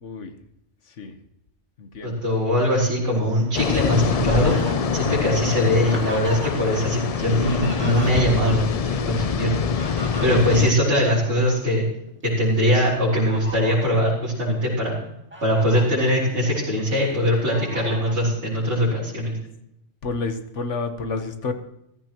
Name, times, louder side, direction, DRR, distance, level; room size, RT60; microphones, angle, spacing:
voice 1, 0.0-0.3 1.0-1.1 1.8-2.2 20.0-21.5, left 3 dB, 75° left, 8 dB, 1.5 m, -29 dB
voice 2, 2.0-4.6 4.9-9.6 10.2-11.8 12.2-15.0 15.4-19.4, equal, 65° right, -9 dB, 4.1 m, -21 dB
sound 1, 3.5-10.7, left 6 dB, 50° left, 0.4 m, -24 dB
Fowl, 3.5-6.8 7.1-8.6 9.5-11.6 12.1-12.3 12.9-14.0 14.6-14.7 15.1-15.8 16.4-17.1 17.5-18.2, equal, 10° right, 2.4 m, -37 dB
15.0 x 14.0 x 3.0 m, 0.82 s
omnidirectional pair, 1.3 m